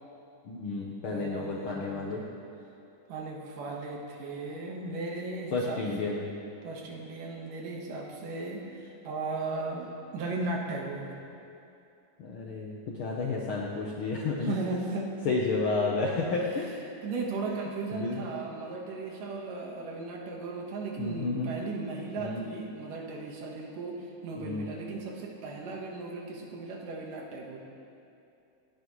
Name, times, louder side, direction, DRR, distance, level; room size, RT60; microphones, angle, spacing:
voice 1, 0.4-2.2 5.5-6.2 12.2-14.5 15.2-16.8 17.9-18.2 21.0-21.5 22.2-22.4 24.4-24.6, left 3 dB, 70° left, -3 dB, 1.3 m, -31 dB
voice 2, 1.1-2.0 3.1-6.1 6.6-11.1 14.4-15.1 17.0-27.6, right 3 dB, 90° right, 0 dB, 3.1 m, -36 dB
26.5 x 9.6 x 3.2 m, 2.6 s
omnidirectional pair, 3.7 m